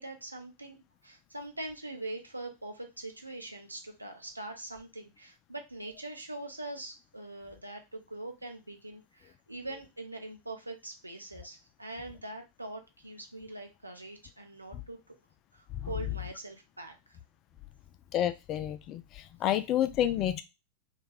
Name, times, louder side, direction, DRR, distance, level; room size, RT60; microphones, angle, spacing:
voice 1, 0.0-15.1 15.5-17.2, right 2 dB, 85° right, 4 dB, 0.5 m, -43 dB
voice 2, 18.1-20.4, left 11 dB, 35° left, 10 dB, 0.3 m, -29 dB
2.3 x 2.1 x 3.3 m, 0.25 s
figure-of-eight pair, 90°, 0 cm